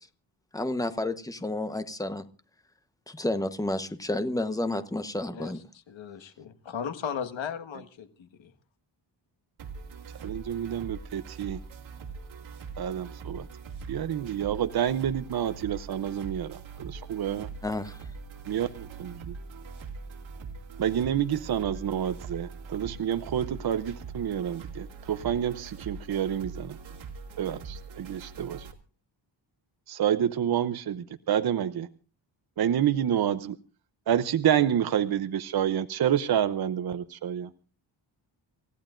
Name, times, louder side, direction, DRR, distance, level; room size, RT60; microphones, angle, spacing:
voice 1, 0.5-2.3 3.1-5.6 17.6-18.0, left 1 dB, 10° left, 1.1 m, -30 dB
voice 2, 5.9-8.5, left 7 dB, 80° left, 1.7 m, -36 dB
sound 1, 9.6-28.7, right 5 dB, 85° right, 2.5 m, -42 dB
voice 3, 10.2-11.6 12.8-13.5 13.9-17.5 18.5-19.3 20.8-26.8 27.4-28.7 29.9-31.9 32.6-33.6 34.1-37.5, right 9 dB, 55° right, 0.7 m, -28 dB
28.5 x 15.0 x 2.6 m
wide cardioid pair, 120°, 45 cm